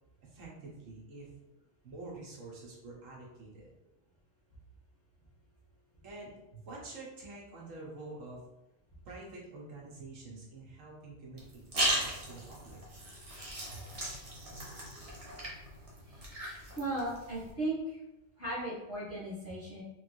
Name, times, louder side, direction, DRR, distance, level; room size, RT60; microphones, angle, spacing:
voice 1, 0.2-1.3 1.8-3.7 6.0-8.4 9.0-12.8 13.7-13.8 14.3-14.5, right 2 dB, 80° right, -3 dB, 1.3 m, -47 dB
sound 1, 11.4-17.5, right 1 dB, 35° right, 0.7 m, -37 dB
voice 2, 16.8-18.0 18.4-19.8, right 1 dB, 10° left, -10 dB, 1.3 m, -36 dB
3.5 x 3.2 x 2.6 m, 0.91 s
omnidirectional pair, 1.3 m